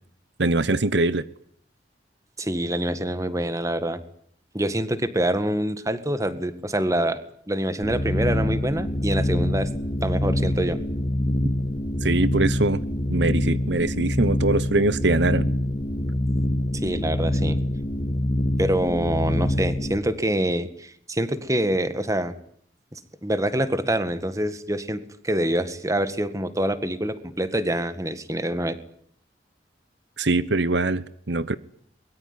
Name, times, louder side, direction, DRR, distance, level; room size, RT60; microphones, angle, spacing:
voice 1, 0.4-1.2 12.0-12.8 13.1-15.5 30.2-31.6, right 2 dB, 75° right, 1.1 m, -22 dB
voice 2, 2.4-4.0 4.5-7.2 7.5-9.7 10.0-10.8 16.8-17.6 18.6-22.3 22.9-28.8, right 1 dB, 20° right, 1.9 m, -26 dB
sound 1, 7.8-19.9, left 1 dB, 30° left, 2.7 m, -25 dB
23.5 x 22.0 x 9.9 m
head